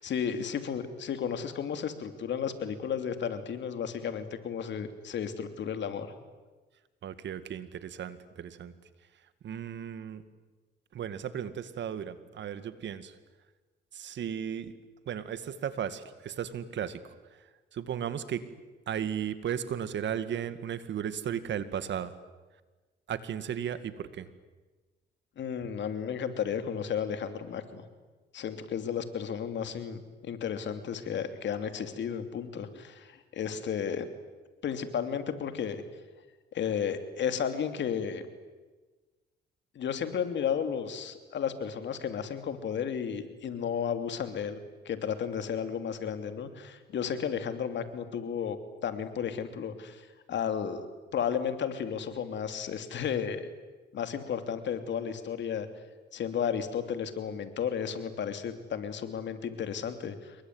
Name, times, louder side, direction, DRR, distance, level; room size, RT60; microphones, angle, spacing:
voice 1, 0.0-6.1 25.4-27.8 28.3-34.1 34.6-35.8 36.5-38.3 39.7-48.6 48.8-50.9 51.1-53.5 53.9-55.7 56.1-60.4, left 7 dB, 65° left, 9 dB, 3.0 m, -33 dB
voice 2, 7.0-8.7 9.4-10.2 10.9-13.1 13.9-14.7 15.1-17.0 17.7-18.4 18.9-22.1 23.1-24.3, right 9 dB, 65° right, 12 dB, 2.1 m, -35 dB
27.5 x 22.5 x 9.6 m, 1.3 s
cardioid pair, 90°, 20 cm